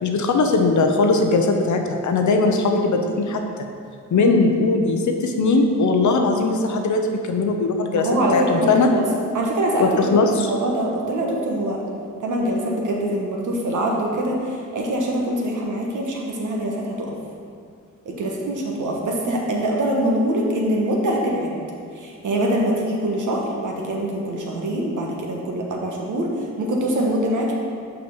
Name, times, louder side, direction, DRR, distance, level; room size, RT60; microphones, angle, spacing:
voice 1, 0.0-3.4 4.1-8.1 8.3-8.9 9.8-10.5, left 3 dB, 65° left, 4 dB, 0.8 m, -19 dB
voice 2, 7.9-9.0 9.3-9.9 10.5-11.8 12.2-17.1 18.0-21.6 21.9-27.5, right 1 dB, 70° right, -1 dB, 1.3 m, -24 dB
5.8 x 5.1 x 5.5 m, 2.3 s
cardioid pair, 80°, 31 cm